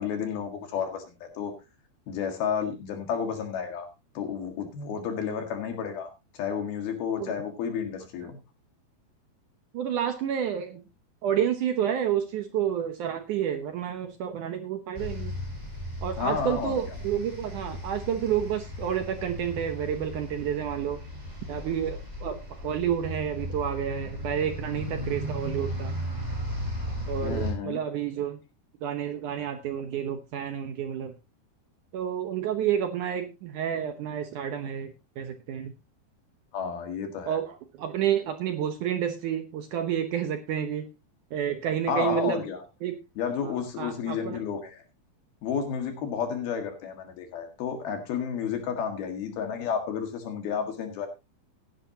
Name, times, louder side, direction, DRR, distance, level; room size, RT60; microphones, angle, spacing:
voice 1, 0.0-1.5 2.1-3.9 4.2-8.4 16.2-16.8 27.2-27.8 36.5-37.4 41.9-42.6 43.2-44.8 45.4-51.1, left 7 dB, 70° left, 5 dB, 3.7 m, -31 dB
voice 2, 9.7-10.8 11.2-15.3 16.0-21.0 21.5-26.0 27.1-28.4 28.8-31.1 31.9-35.7 37.3-40.9 41.3-42.4 42.8-43.0 43.4-44.4, right 9 dB, 70° right, 7 dB, 2.0 m, -30 dB
sound 1, 14.9-27.5, equal, 10° right, 5.5 m, -36 dB
16.0 x 10.5 x 2.8 m, 0.26 s
omnidirectional pair, 4.6 m